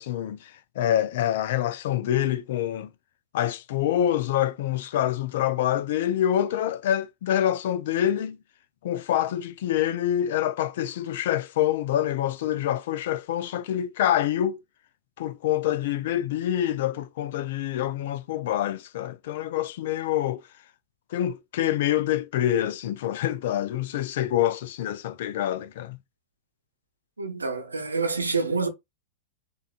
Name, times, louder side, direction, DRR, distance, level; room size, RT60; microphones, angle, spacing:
voice 1, 0.0-2.9 3.3-8.4 8.8-14.6 15.2-20.4 21.1-26.0, left 11 dB, 55° left, 0.4 m, -26 dB
voice 2, 27.2-28.7, right 4 dB, 80° right, 0.8 m, -27 dB
4.9 x 2.4 x 2.4 m
figure-of-eight pair, 90°, 0 cm